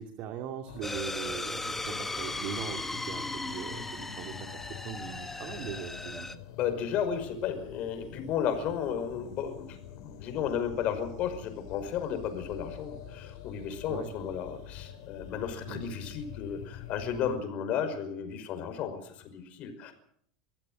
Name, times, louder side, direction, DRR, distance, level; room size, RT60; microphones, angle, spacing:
voice 1, 0.0-6.3 13.9-14.1 15.7-15.8, right 8 dB, 50° right, 5 dB, 2.5 m, -40 dB
sound 1, 0.7-17.4, left 9 dB, 75° left, 4.3 m, -46 dB
sound 2, 0.8-6.4, left 2 dB, 10° left, 1.3 m, -37 dB
voice 2, 6.6-19.9, left 8 dB, 45° left, 8 dB, 5.4 m, -33 dB
25.0 x 15.0 x 7.7 m, 0.67 s
supercardioid pair, 135°, 3 cm